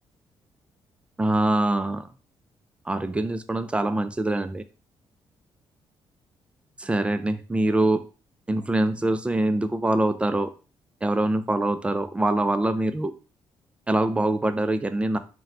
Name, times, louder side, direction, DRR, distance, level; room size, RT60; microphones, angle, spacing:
voice 1, 1.2-2.1 2.9-4.6 6.8-8.0 8.5-10.5 11.0-13.1 13.9-15.2, right 2 dB, 10° right, 10 dB, 0.4 m, -24 dB
3.9 x 2.2 x 4.2 m, 0.35 s
cardioid pair, 120°, 9 cm